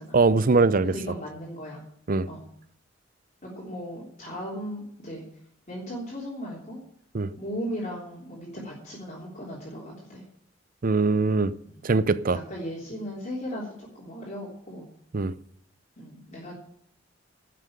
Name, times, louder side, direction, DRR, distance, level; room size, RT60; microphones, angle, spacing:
voice 1, 0.1-0.9 2.1-2.3 7.1-7.3 10.8-11.5 11.8-12.4 15.1-15.3, right 3 dB, 45° right, 0.6 m, -21 dB
voice 2, 0.9-1.8 2.3-2.5 3.4-5.2 5.7-6.8 7.4-10.2 11.6-11.8 12.3-14.9 16.0-16.5, equal, 35° left, 3.5 m, -37 dB
12.0 x 7.6 x 8.8 m
head